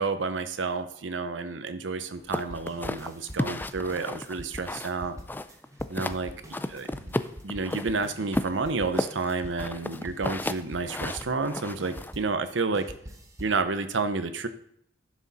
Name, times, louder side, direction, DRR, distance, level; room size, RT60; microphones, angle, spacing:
voice 1, 0.0-5.2 5.9-6.3 6.7-7.1 7.4-12.9 13.4-14.5, right 4 dB, 80° right, 10 dB, 0.8 m, -30 dB
sound 1, 2.2-12.4 12.7-13.6, equal, 20° right, 1.2 m, -44 dB
sound 2, 2.3-5.0 5.3-6.2 6.5-7.9 8.3-12.1, left 1 dB, 10° left, 0.3 m, -33 dB
11.0 x 6.3 x 4.1 m, 0.69 s
head